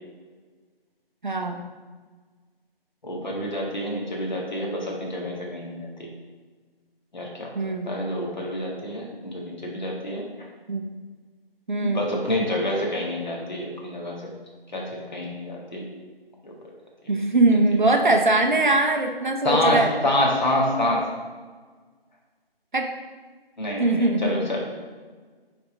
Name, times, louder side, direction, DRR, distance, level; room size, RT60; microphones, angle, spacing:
voice 1, 1.2-1.6 7.6-7.9 10.7-10.8 11.7-12.1 17.1-19.9 22.7-22.9 23.8-24.4, right 2 dB, 50° right, 4 dB, 0.7 m, -21 dB
voice 2, 3.0-5.9 7.1-7.5 7.9-10.2 11.8-14.2 14.7-14.8 15.1-15.8 16.4-16.5 19.4-21.0 23.6-24.6, left 1 dB, 50° left, -2 dB, 1.7 m, -27 dB
8.8 x 3.5 x 3.9 m, 1.4 s
figure-of-eight pair, 175°, 30 cm